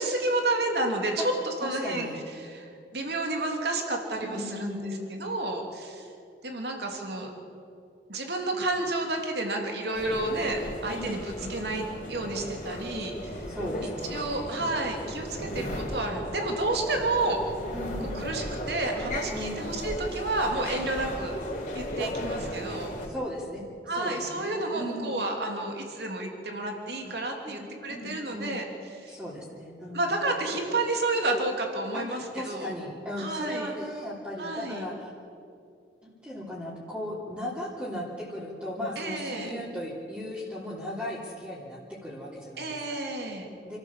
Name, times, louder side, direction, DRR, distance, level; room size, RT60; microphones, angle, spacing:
voice 1, 0.0-2.1 2.4-4.8 5.1-6.1 6.4-7.3 8.1-11.2 11.5-13.4 14.1-17.4 18.0-21.4 21.7-22.9 23.9-28.6 29.0-29.2 29.9-32.7 33.2-33.7 34.4-34.9 39.0-39.5 42.6-43.5, right 2 dB, 70° right, 2 dB, 3.0 m, -30 dB
voice 2, 1.6-2.2 4.1-5.2 10.9-11.1 11.4-11.5 13.5-14.2 17.7-18.3 19.3-19.7 22.0-22.1 23.1-23.6 23.9-25.2 27.4-27.6 27.9-28.6 29.1-30.1 31.9-35.1 36.0-43.0 43.6-43.8, left 1 dB, 10° right, -8 dB, 3.2 m, -37 dB
sound 1, 9.9-23.1, equal, 45° left, 3.9 m, -36 dB
28.5 x 13.5 x 7.4 m, 2.5 s
head